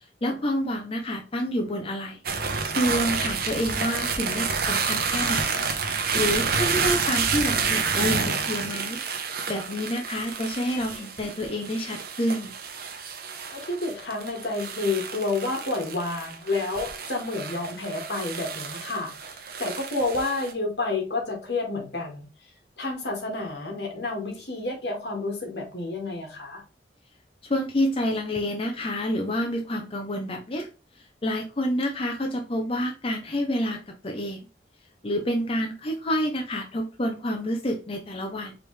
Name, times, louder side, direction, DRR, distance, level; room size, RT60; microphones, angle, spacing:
voice 1, 0.2-2.2 2.8-5.6 6.1-9.0 9.5-12.5 27.4-30.7 31.2-34.4 35.0-38.6, equal, 30° left, 0.6 m, -28 dB
sound 1, 2.2-20.5, right 5 dB, 55° right, 0.8 m, -29 dB
voice 2, 13.5-22.3 22.8-26.6, left 3 dB, 65° left, 2.0 m, -30 dB
4.9 x 3.3 x 3.3 m
head